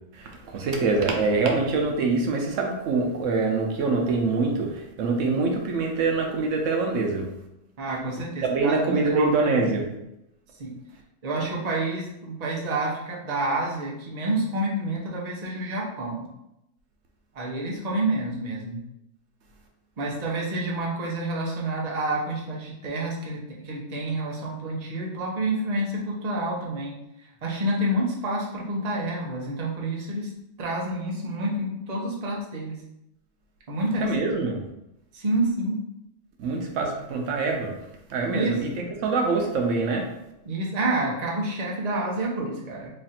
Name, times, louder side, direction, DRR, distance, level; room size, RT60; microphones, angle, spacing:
voice 1, 0.1-7.3 8.5-9.8 34.0-34.6 36.4-37.7 38.1-40.1, right 3 dB, 80° right, 2 dB, 1.0 m, -24 dB
voice 2, 7.8-9.8 10.6-10.7 11.2-16.3 17.3-18.8 20.0-27.0 27.4-30.3 30.6-32.8 33.7-34.1 35.1-35.8 38.3-38.8 40.4-42.9, right 1 dB, 40° right, -3 dB, 0.7 m, -28 dB
3.2 x 2.5 x 4.1 m, 0.86 s
omnidirectional pair, 1.3 m